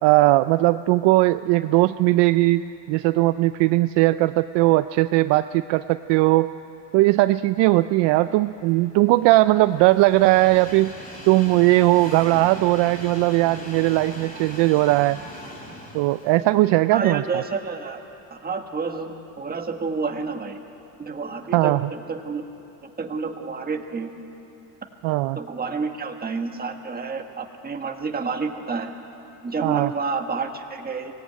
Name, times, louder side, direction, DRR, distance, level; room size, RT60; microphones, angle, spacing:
voice 1, 0.0-6.5 6.9-10.9 11.3-15.2 15.9-17.2 21.5-21.8 25.0-25.4 29.6-29.9, right 18 dB, 60° right, 12 dB, 0.5 m, -19 dB
Train, 8.1-18.2 18.7-18.8 19.9-20.0, equal, 15° left, 3.2 m, -41 dB
voice 2, 16.9-18.0 18.3-20.6 21.0-22.4 22.8-24.1 25.3-28.9 29.4-31.1, right 4 dB, 20° right, 4 dB, 1.6 m, -29 dB
24.0 x 18.0 x 9.4 m, 2.9 s
cardioid pair, 130°, 48 cm